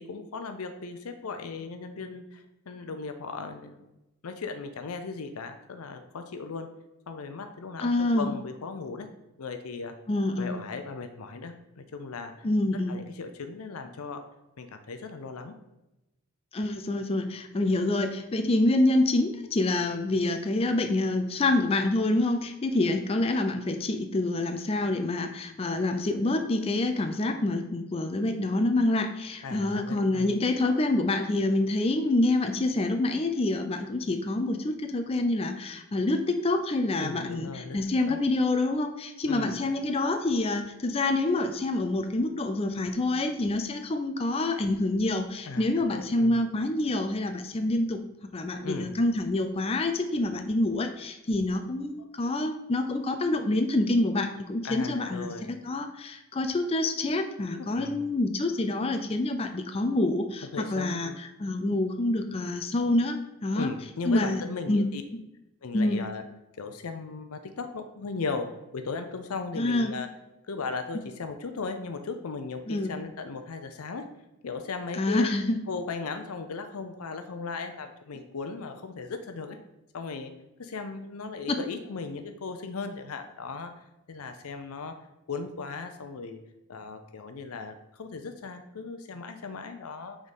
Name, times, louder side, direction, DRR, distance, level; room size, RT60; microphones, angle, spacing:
voice 1, 0.0-3.9 4.2-6.7 7.1-9.1 9.4-9.9 10.4-12.5 12.9-14.2 14.6-15.5 29.4-30.3 37.0-37.8 38.0-38.2 39.3-39.6 45.5-46.4 48.6-49.0 52.0-52.1 54.6-55.5 57.6-58.0 60.5-61.2 63.5-65.0 65.6-66.2 66.6-68.5 68.7-70.1 70.5-74.1 74.4-75.3 75.7-79.6 79.9-80.3 80.6-83.7 84.1-84.9 85.3-86.4 86.7-90.2, left 4 dB, 85° left, 7 dB, 0.6 m, -37 dB
voice 2, 7.8-8.3 10.1-10.5 12.4-12.9 16.5-48.0 48.3-55.3 55.6-63.7 64.1-64.9 65.7-66.0 69.6-69.9 72.7-72.9 74.9-75.6, left 2 dB, 25° left, 6 dB, 0.4 m, -27 dB
6.4 x 3.7 x 5.3 m, 0.93 s
head